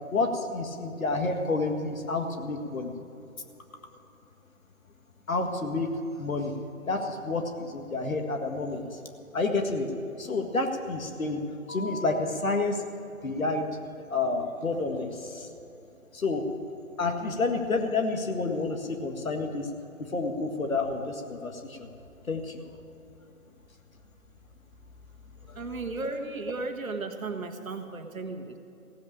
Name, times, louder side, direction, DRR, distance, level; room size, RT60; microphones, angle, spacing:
voice 1, 0.1-2.9 5.3-5.9 6.2-6.5 6.9-9.0 9.3-9.9 10.2-11.4 11.7-12.8 13.2-13.7 14.1-15.5 16.1-16.5 17.0-19.7 20.1-21.9 22.3-22.7 25.5-25.6, left 3 dB, 70° left, 4 dB, 1.9 m, -29 dB
voice 2, 25.5-28.6, right 3 dB, 70° right, 6 dB, 1.6 m, -35 dB
16.0 x 8.1 x 8.8 m, 2.9 s
figure-of-eight pair, 145°, 43 cm